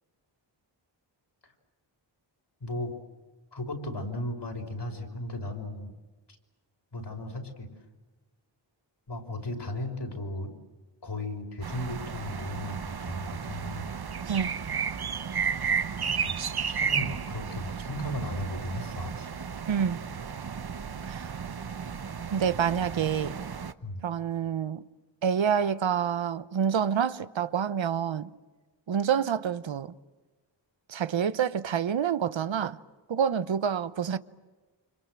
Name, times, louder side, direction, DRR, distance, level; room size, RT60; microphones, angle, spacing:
voice 1, 2.6-2.9 3.5-5.9 6.9-7.7 9.1-10.5 11.0-13.9 16.1-19.3 23.8-24.0, left 1 dB, 65° left, 5.2 m, -36 dB
sound 1, 11.6-23.7, right 6 dB, 55° right, 1.1 m, -33 dB
voice 2, 19.7-20.0 21.1-21.3 22.3-23.3 24.0-24.8 25.2-28.3 28.9-29.9 30.9-32.8 33.1-34.2, right 8 dB, 80° right, 1.0 m, -27 dB
29.5 x 26.0 x 7.6 m
wide cardioid pair, 65°, 45 cm